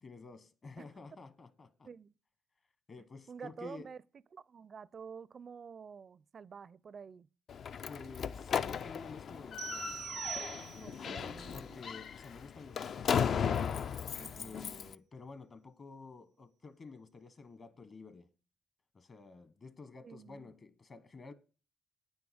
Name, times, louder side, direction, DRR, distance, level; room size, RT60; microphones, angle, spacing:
voice 1, 0.0-1.9 2.9-3.9 7.9-10.0 10.7-11.2 11.5-13.8 14.4-18.3 18.9-21.3, left 4 dB, 40° left, 1.1 m, -51 dB
voice 2, 3.3-4.0 4.3-7.3 10.8-11.8 14.2-14.8 20.0-20.5, right 6 dB, 45° right, 0.4 m, -49 dB
Slam, 7.5-14.9, left 7 dB, 60° left, 0.4 m, -36 dB
sound 1, 9.6-11.1, right 10 dB, 90° right, 0.6 m, -42 dB
9.3 x 7.1 x 7.8 m
cardioid pair, 90°, 0 cm